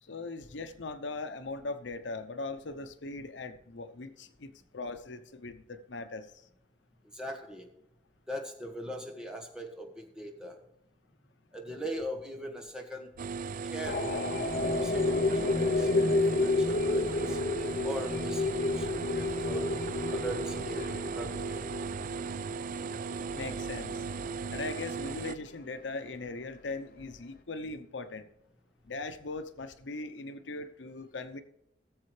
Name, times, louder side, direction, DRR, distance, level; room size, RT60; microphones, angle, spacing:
voice 1, 0.0-6.3 23.3-24.0 24.5-28.3 28.8-31.4, left 3 dB, 85° left, 10 dB, 0.8 m, -40 dB
voice 2, 7.1-7.7 8.3-10.6 11.5-13.1 13.6-17.4 17.8-19.7 20.1-21.6, equal, 5° right, 2 dB, 1.7 m, -41 dB
sound 1, 13.2-25.4, right 5 dB, 50° right, 0.3 m, -37 dB
sound 2, 13.8-25.5, left 3 dB, 55° left, 0.8 m, -31 dB
18.5 x 7.3 x 3.3 m, 0.84 s
head